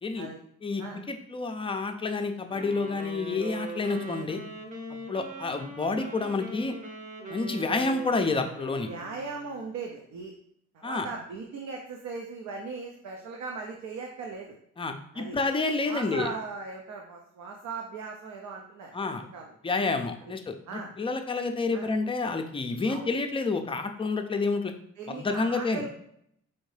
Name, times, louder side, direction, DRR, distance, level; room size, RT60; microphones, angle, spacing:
voice 1, 0.6-4.4 5.1-6.7 7.3-8.9 10.8-11.1 14.8-16.3 18.9-19.2 19.6-24.7 25.1-25.8, left 3 dB, 20° left, 6 dB, 0.4 m, -29 dB
Wind instrument woodwind instrument, 2.5-9.7, right 2 dB, 25° right, 0.8 m, -41 dB
voice 2, 8.9-10.3 10.7-14.6 15.1-15.4 15.9-19.5 20.2-20.3 20.7-20.9 21.7-21.9 22.9-23.1 25.0-25.9, right 4 dB, 70° right, 1 dB, 0.6 m, -38 dB
4.4 x 2.6 x 3.2 m, 0.71 s
cardioid pair, 90°, 30 cm